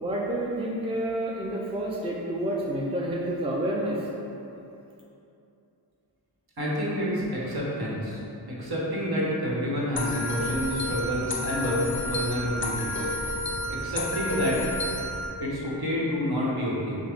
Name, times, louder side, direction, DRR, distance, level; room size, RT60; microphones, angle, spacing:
voice 1, 0.0-4.1, right 1 dB, 15° right, -3 dB, 0.6 m, -29 dB
voice 2, 6.6-8.2 8.6-13.1 13.7-14.6 15.4-17.0, equal, 55° right, -6 dB, 1.3 m, -29 dB
sound 1, 10.0-15.3, left 1 dB, 25° left, 0.7 m, -30 dB
6.3 x 2.2 x 3.5 m, 2.8 s
cardioid pair, 45°, 44 cm